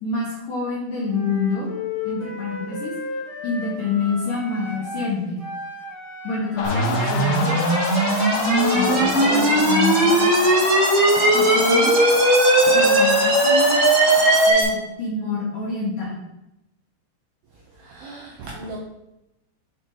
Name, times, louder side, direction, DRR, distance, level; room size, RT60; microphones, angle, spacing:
voice 1, 0.0-1.7 2.0-2.9 3.4-5.4 6.2-7.5 8.7-10.3 11.3-12.0 12.6-13.8 14.5-16.2, left 3 dB, 65° left, -7 dB, 2.2 m, -27 dB
Wind instrument woodwind instrument, 1.1-5.1 5.4-9.6, left 4 dB, 30° right, 1.0 m, -34 dB
sound 1, 6.6-14.5, left 7 dB, 85° left, 2.5 m, -28 dB
sound 2, 6.6-14.6, right 2 dB, 55° right, 3.6 m, -18 dB
voice 2, 8.5-9.8 17.7-18.8, right 1 dB, 80° right, -2 dB, 2.4 m, -33 dB
8.0 x 4.6 x 4.0 m, 0.90 s
omnidirectional pair, 5.8 m